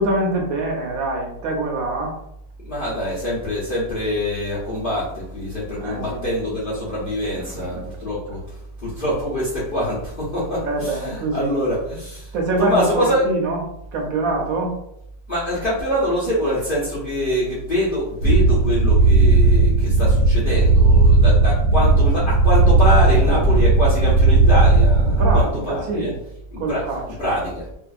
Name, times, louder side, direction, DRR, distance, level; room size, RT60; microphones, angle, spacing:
voice 1, 0.0-2.1 5.8-6.2 7.6-7.8 10.6-11.5 12.3-13.6 13.9-14.7 25.2-26.1 26.6-27.0, right 2 dB, 70° right, 1 dB, 0.9 m, -24 dB
voice 2, 2.6-13.2 15.3-26.1 26.5-26.9 27.2-27.6, equal, 65° left, -8 dB, 0.5 m, -24 dB
sound 1, 18.2-25.4, right 3 dB, 85° right, 1.2 m, -15 dB
2.6 x 2.4 x 2.3 m, 0.76 s
omnidirectional pair, 1.8 m